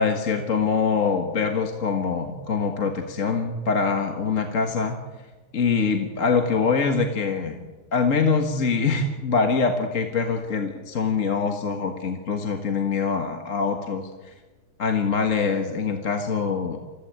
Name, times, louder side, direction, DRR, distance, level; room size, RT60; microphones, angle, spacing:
voice 1, 0.0-5.0 5.5-7.6 7.9-14.1 14.8-16.8, left 5 dB, 40° left, 4 dB, 1.7 m, -24 dB
25.5 x 15.5 x 8.8 m, 1.3 s
omnidirectional pair, 2.4 m